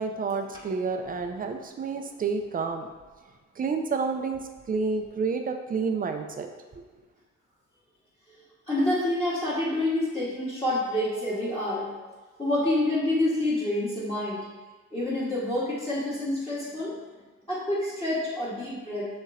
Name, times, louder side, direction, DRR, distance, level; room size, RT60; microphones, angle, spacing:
voice 1, 0.0-2.9 3.6-4.4 4.7-6.8, right 4 dB, 30° right, 5 dB, 0.5 m, -29 dB
voice 2, 8.7-11.9 12.4-14.4 14.9-16.9 17.5-19.1, left 1 dB, 20° left, -9 dB, 1.5 m, -27 dB
6.4 x 3.0 x 2.6 m, 1.3 s
cardioid pair, 90°, 30 cm